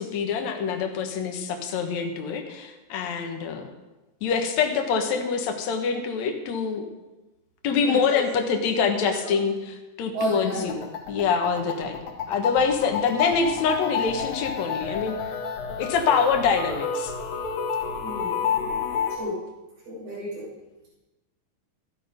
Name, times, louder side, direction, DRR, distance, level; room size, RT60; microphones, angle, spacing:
voice 1, 0.0-3.7 4.2-6.9 7.6-15.2 15.8-17.1, left 5 dB, 60° left, 4 dB, 2.5 m, -25 dB
voice 2, 7.9-8.2 9.0-9.3 10.1-10.7 18.0-18.7 19.1-19.5 19.9-20.5, equal, 80° right, -10 dB, 6.2 m, -32 dB
sound 1, 10.6-19.2, left 6 dB, 85° left, 3.5 m, -30 dB
15.0 x 11.5 x 5.2 m, 1.1 s
omnidirectional pair, 3.9 m